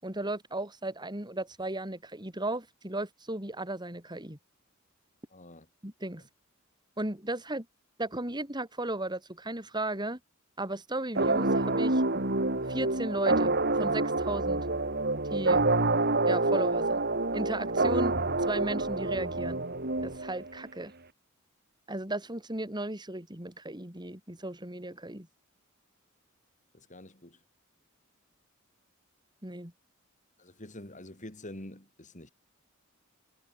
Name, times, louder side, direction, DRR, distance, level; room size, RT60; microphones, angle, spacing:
voice 1, 0.0-4.4 5.8-6.2 7.0-7.7 8.0-10.2 10.6-12.0 12.7-14.7 15.3-15.7 16.2-17.0 17.3-18.1 18.5-19.6 20.0-20.9 21.9-25.3 29.4-29.7, right 2 dB, 20° right, 4.7 m, -35 dB
voice 2, 5.3-5.7 26.7-27.4 30.4-32.3, left 1 dB, 35° left, 4.2 m, -46 dB
sound 1, 11.2-20.6, right 2 dB, 50° right, 4.0 m, -27 dB
head